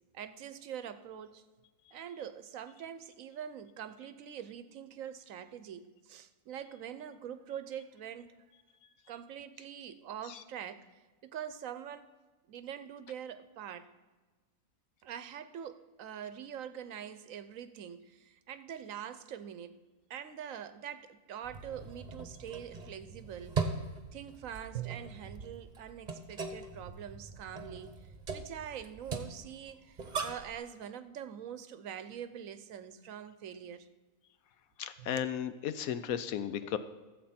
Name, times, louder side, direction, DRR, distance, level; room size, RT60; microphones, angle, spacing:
voice 1, 0.1-1.4 1.9-8.4 9.1-10.9 11.2-12.1 12.5-13.9 15.0-19.8 20.1-33.9 35.0-35.3, right 9 dB, 70° right, 12 dB, 1.1 m, -44 dB
sound 1, 21.4-30.6, right 5 dB, 35° right, 1.0 m, -40 dB
voice 2, 34.8-36.8, left 9 dB, 75° left, 12 dB, 1.1 m, -35 dB
14.0 x 7.6 x 4.3 m, 1.3 s
omnidirectional pair, 1.5 m